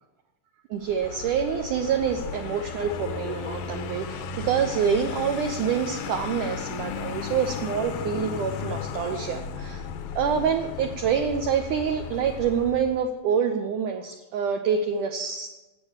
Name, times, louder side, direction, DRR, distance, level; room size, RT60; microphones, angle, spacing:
voice 1, 0.7-9.8 10.1-15.5, right 7 dB, 75° right, 5 dB, 1.9 m, -26 dB
Vehicle, 0.8-13.1, left 6 dB, 75° left, 2.4 m, -35 dB
13.5 x 8.6 x 7.1 m, 1.1 s
omnidirectional pair, 4.4 m